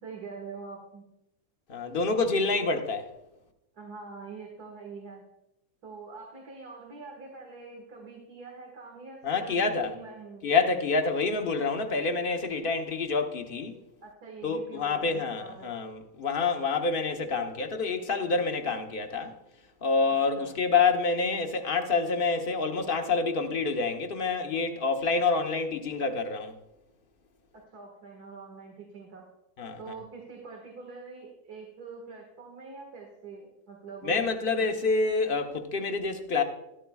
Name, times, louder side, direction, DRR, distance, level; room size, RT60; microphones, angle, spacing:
voice 1, 0.0-1.0 3.7-5.2 5.8-10.5 14.0-15.7 20.1-20.5 27.5-29.3 29.8-34.3, right 4 dB, 90° right, 2.2 m, -44 dB
voice 2, 1.7-3.1 9.2-9.9 10.4-13.7 14.4-19.3 19.8-26.5 29.6-29.8 34.0-36.4, left 4 dB, 40° left, 1.0 m, -27 dB
13.5 x 13.0 x 2.3 m
omnidirectional pair, 1.6 m